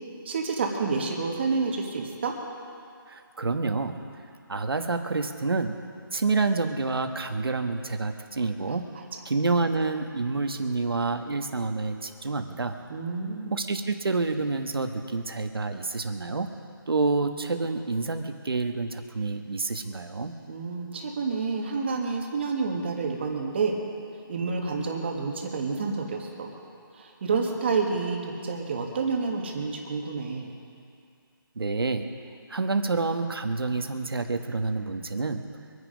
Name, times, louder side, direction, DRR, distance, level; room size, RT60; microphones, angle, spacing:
voice 1, 0.2-2.3 8.7-8.8 12.9-13.6 20.5-23.7 24.3-26.5 26.9-30.5, right 4 dB, 30° right, 1 dB, 1.6 m, -29 dB
voice 2, 3.1-4.0 4.5-5.7 6.1-8.9 9.2-12.8 13.5-16.5 16.9-20.3 31.5-32.1 32.5-35.4, right 3 dB, 80° right, 6 dB, 1.5 m, -28 dB
24.5 x 9.9 x 5.2 m, 2.4 s
hypercardioid pair, 170°, 12 cm